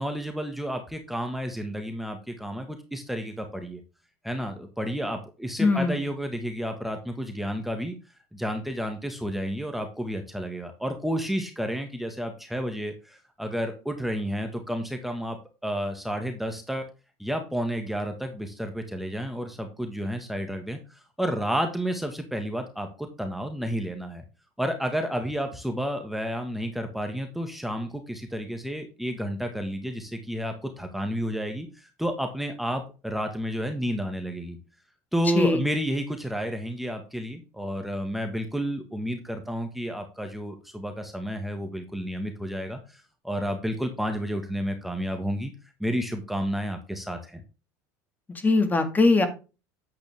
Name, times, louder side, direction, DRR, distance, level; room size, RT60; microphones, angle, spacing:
voice 1, 0.0-3.8 4.2-8.0 8.3-15.4 15.6-16.8 17.2-24.2 24.6-34.6 35.1-45.5 45.8-47.4, equal, ahead, 5 dB, 1.6 m, -31 dB
voice 2, 5.6-6.0 35.4-35.6 48.3-49.3, left 3 dB, 20° left, 8 dB, 2.0 m, -21 dB
9.5 x 7.9 x 3.5 m, 0.31 s
supercardioid pair, 105°, 9 cm